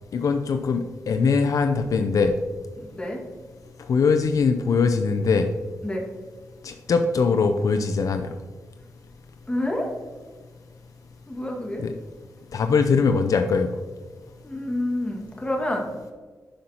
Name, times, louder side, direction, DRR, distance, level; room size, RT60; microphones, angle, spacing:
voice 1, 0.1-2.3 3.9-5.5 6.6-8.3 11.8-11.9 12.5-13.7, left 5 dB, 70° left, 7 dB, 0.5 m, -21 dB
voice 2, 2.8-3.2 5.8-6.1 9.5-9.9 11.3-11.8 14.4-15.9, left 1 dB, 20° left, 0 dB, 2.1 m, -28 dB
11.5 x 5.5 x 2.9 m, 1.5 s
cardioid pair, 70°, 6 cm